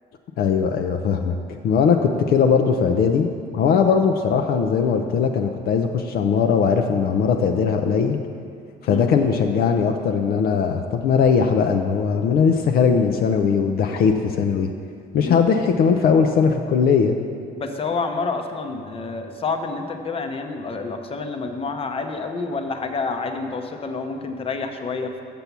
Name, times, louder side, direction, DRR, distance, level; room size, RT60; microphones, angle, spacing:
voice 1, 0.4-1.3 1.6-8.2 8.8-14.7 15.1-17.1, left 6 dB, 65° left, 4 dB, 0.5 m, -19 dB
voice 2, 17.6-25.1, left 4 dB, 35° left, 6 dB, 0.7 m, -28 dB
6.9 x 6.8 x 6.0 m, 2.3 s
cardioid pair, 110°, 17 cm